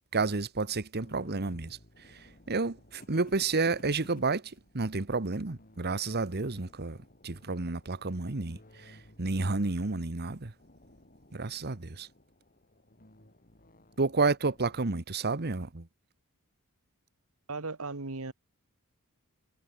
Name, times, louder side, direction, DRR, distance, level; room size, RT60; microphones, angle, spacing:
voice 1, 0.1-1.8 2.0-7.0 7.2-10.5 11.3-12.1 14.0-15.9, right 3 dB, 50° right, 1.2 m, -31 dB
sound 1, 1.0-14.9, left 1 dB, 40° left, 6.1 m, -58 dB
voice 2, 17.5-18.3, right 3 dB, 70° right, 1.7 m, -36 dB
head